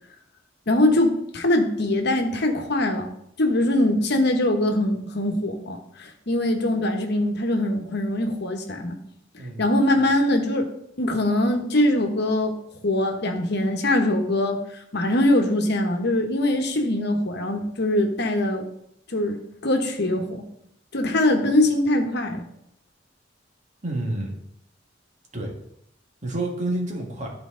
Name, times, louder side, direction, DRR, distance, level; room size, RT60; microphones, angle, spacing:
voice 1, 0.7-9.0 9.6-10.7 11.0-12.5 12.8-18.7 19.1-20.4 20.9-22.4, left 1 dB, 60° left, 5 dB, 1.1 m, -22 dB
voice 2, 23.8-24.4 25.3-25.5 26.2-27.3, right 1 dB, 40° right, 0 dB, 1.7 m, -28 dB
12.0 x 4.5 x 3.8 m, 0.75 s
head